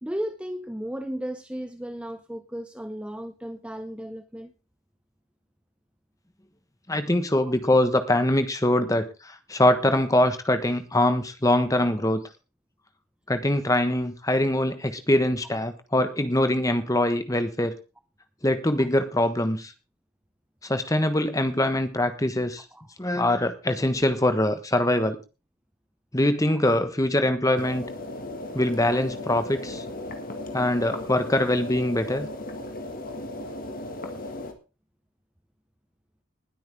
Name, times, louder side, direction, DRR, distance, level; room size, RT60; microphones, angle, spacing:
voice 1, 0.0-4.5 7.4-7.5 18.8-18.9 22.7-22.9 26.5-26.6, equal, 5° right, 8 dB, 0.6 m, -35 dB
voice 2, 6.9-12.2 13.3-17.8 18.4-19.7 20.6-22.6 23.0-25.2 26.1-27.8 28.5-29.8 30.5-32.3, left 1 dB, 15° left, 9 dB, 1.3 m, -23 dB
sound 1, 27.6-34.5, left 2 dB, 40° left, 1.9 m, -36 dB
20.0 x 8.8 x 3.6 m, 0.31 s
head